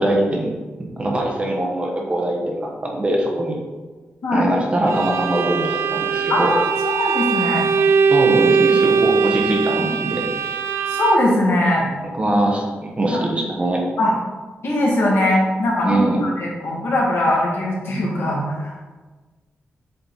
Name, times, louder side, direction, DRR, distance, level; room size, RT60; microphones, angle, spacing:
voice 1, 0.0-3.6 4.3-6.5 8.1-10.2 12.2-13.8 15.8-16.2, right 1 dB, 25° right, -1 dB, 1.2 m, -22 dB
Bowed string instrument, 4.9-11.4, right 6 dB, 85° right, 0.4 m, -20 dB
voice 2, 6.3-7.6 10.9-11.9 13.1-13.2 14.0-14.1 14.6-18.7, left 1 dB, 70° left, -4 dB, 2.1 m, -20 dB
7.8 x 4.4 x 4.1 m, 1.3 s
wide cardioid pair, 160°, 4 cm